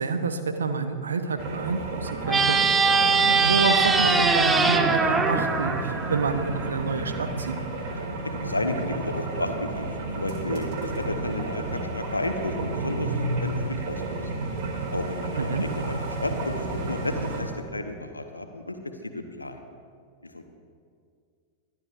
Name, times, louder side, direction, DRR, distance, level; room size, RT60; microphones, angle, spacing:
voice 1, 0.0-2.6 3.2-7.6 15.4-15.6, right 4 dB, 70° right, 8 dB, 0.9 m, -28 dB
sound 1, 1.4-17.4, right 2 dB, 45° right, 2.3 m, -32 dB
sound 2, 2.3-6.7, right 4 dB, 15° right, 0.7 m, -22 dB
voice 2, 8.4-13.1 13.4-14.0 14.9-18.8 19.0-19.6 20.2-20.4, left 1 dB, 85° left, 6 dB, 1.0 m, -32 dB
22.0 x 12.0 x 2.5 m, 2.2 s
figure-of-eight pair, 90°, 0 cm